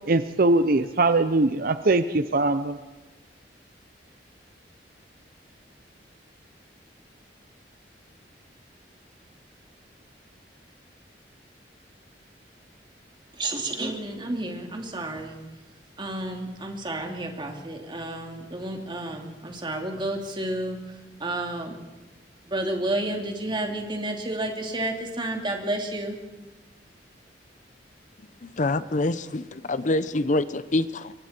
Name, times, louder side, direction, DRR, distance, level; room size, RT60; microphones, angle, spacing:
voice 1, 0.1-2.8, right 2 dB, 55° right, 11 dB, 0.7 m, -21 dB
voice 2, 13.4-15.4 16.0-21.8 22.5-26.2, right 1 dB, 30° right, 2 dB, 2.9 m, -31 dB
voice 3, 28.4-31.1, left 2 dB, 45° left, 14 dB, 0.7 m, -26 dB
26.5 x 23.0 x 4.5 m, 1.1 s
head